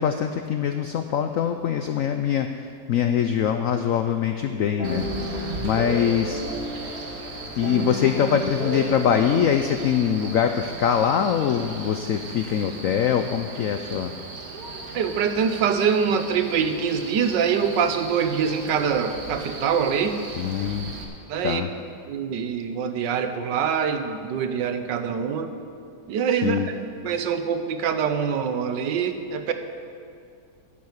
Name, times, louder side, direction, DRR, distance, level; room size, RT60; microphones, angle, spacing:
voice 1, 0.0-6.4 7.3-14.1 20.3-20.9 21.4-21.7 26.4-26.7, left 8 dB, 80° left, 7 dB, 0.7 m, -23 dB
sound 1, 4.8-10.5, equal, 35° right, 1.8 m, -32 dB
Male speech man speaking, 4.8-21.0, right 3 dB, 55° right, 1.8 m, -38 dB
voice 2, 14.9-20.2 21.3-21.6 22.1-25.5 26.1-26.7 27.0-29.5, right 7 dB, 75° right, 8 dB, 1.4 m, -24 dB
10.5 x 8.6 x 8.1 m, 2.4 s
omnidirectional pair, 2.0 m